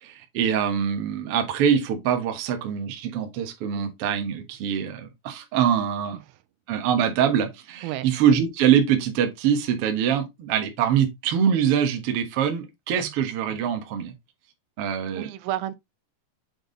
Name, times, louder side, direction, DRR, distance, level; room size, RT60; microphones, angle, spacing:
voice 1, 0.0-6.2 6.7-14.1 14.8-15.3, right 8 dB, 65° right, 1.4 m, -24 dB
voice 2, 15.2-15.8, right 13 dB, 85° right, 2.3 m, -31 dB
7.0 x 4.0 x 3.9 m
omnidirectional pair, 4.4 m